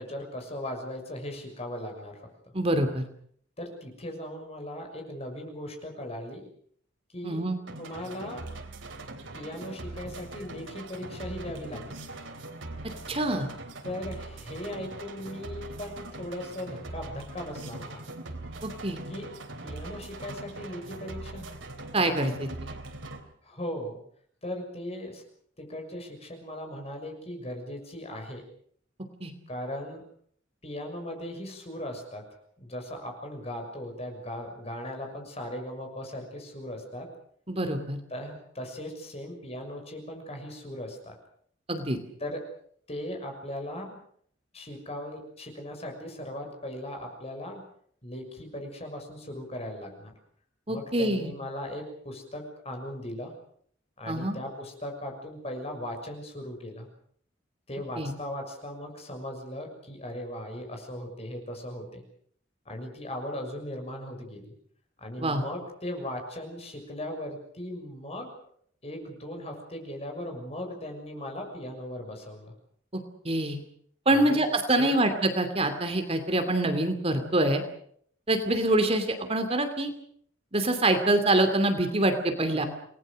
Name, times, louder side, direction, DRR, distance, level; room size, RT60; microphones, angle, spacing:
voice 1, 0.0-2.3 3.6-6.4 7.1-8.4 9.3-12.0 13.8-18.0 19.1-19.4 19.6-21.4 23.4-24.0 24.4-25.2 25.6-28.4 29.5-30.0 30.6-32.3 32.6-37.1 38.1-41.1 42.2-42.5 42.9-44.0 44.5-47.6 48.0-50.1 50.7-53.3 54.0-56.9 57.7-62.0 62.6-64.6 65.0-68.3 68.8-72.5 74.1-74.4 74.7-75.0, left 1 dB, 35° left, 4 dB, 6.5 m, -38 dB
voice 2, 2.5-3.0 7.2-7.6 13.1-13.5 18.6-19.0 21.9-22.8 29.2-29.3 37.5-38.0 41.7-42.0 50.7-51.3 54.1-54.4 58.0-58.1 65.2-65.4 72.9-73.6 74.1-77.6 78.3-79.9 80.5-82.7, right 1 dB, 30° right, 7 dB, 2.7 m, -25 dB
sound 1, 7.7-23.2, right 2 dB, 85° right, 3.6 m, -41 dB
28.5 x 20.0 x 6.5 m, 0.62 s
head